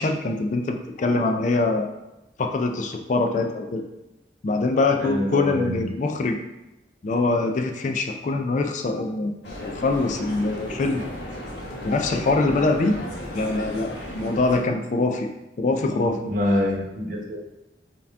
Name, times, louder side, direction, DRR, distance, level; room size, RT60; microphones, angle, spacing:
voice 1, 0.0-1.9 2.4-3.8 4.4-6.4 7.0-9.3 9.6-11.0 11.8-13.0 13.3-15.3 15.6-16.4, left 3 dB, 45° left, 4 dB, 0.4 m, -23 dB
voice 2, 5.0-5.8 16.0-17.4, left 1 dB, 50° right, -2 dB, 0.9 m, -26 dB
sound 1, 9.4-14.6, equal, 90° left, 1.0 m, -35 dB
4.4 x 2.8 x 3.4 m, 0.96 s
head